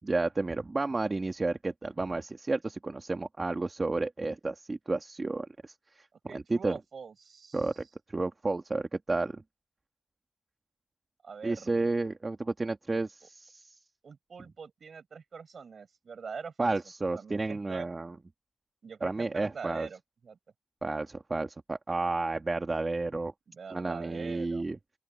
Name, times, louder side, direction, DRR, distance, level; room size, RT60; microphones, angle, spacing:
voice 1, 0.1-6.8 7.5-9.4 11.4-13.8 16.6-18.2 19.0-19.9 20.8-23.3 23.7-24.8, right 3 dB, 40° right, 2.1 m, -32 dB
voice 2, 6.3-7.7 11.2-11.9 14.0-16.7 17.1-17.9 18.8-20.4 23.5-24.7, right 5 dB, 75° right, 6.9 m, -43 dB
open air
cardioid pair, 50°, 0 cm